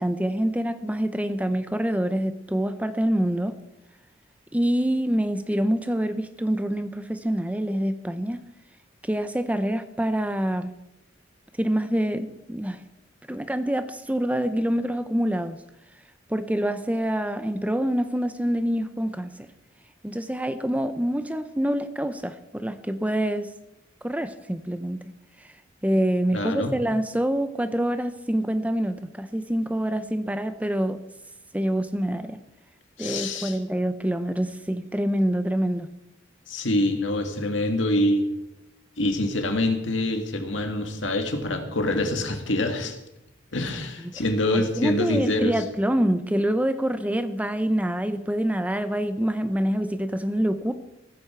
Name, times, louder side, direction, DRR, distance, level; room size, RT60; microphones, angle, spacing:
voice 1, 0.0-3.5 4.5-8.4 9.0-10.7 11.6-12.8 13.3-15.6 16.3-19.5 20.0-23.5 24.0-25.0 25.8-31.0 31.5-32.4 33.0-35.9 44.0-50.7, right 1 dB, 10° right, 10 dB, 0.6 m, -26 dB
voice 2, 26.3-26.7 33.0-33.6 36.5-38.3 39.0-42.9 43.5-45.6, left 1 dB, 70° left, 5 dB, 2.2 m, -25 dB
16.0 x 14.5 x 4.5 m, 0.89 s
head